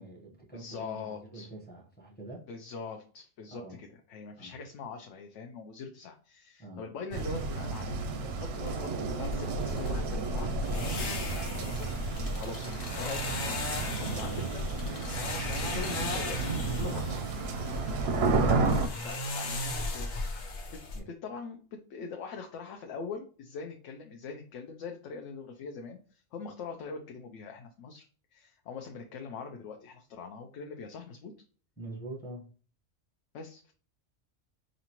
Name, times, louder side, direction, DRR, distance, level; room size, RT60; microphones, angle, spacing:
voice 1, 0.0-2.5 3.5-3.8 4.4-4.5 6.6-6.9 17.8-18.3 20.9-21.0 31.8-32.5, right 2 dB, 10° left, -2 dB, 0.8 m, -45 dB
voice 2, 0.5-1.5 2.5-17.3 18.0-18.7 19.0-20.1 20.7-20.8 21.1-28.0 28.3-31.3 33.3-33.7, left 5 dB, 70° left, 3 dB, 0.9 m, -43 dB
sound 1, 7.1-18.9, right 4 dB, 65° right, 0.7 m, -32 dB
sound 2, 9.2-21.0, left 2 dB, 85° left, 1.3 m, -37 dB
5.2 x 2.5 x 2.9 m, 0.41 s
omnidirectional pair, 1.4 m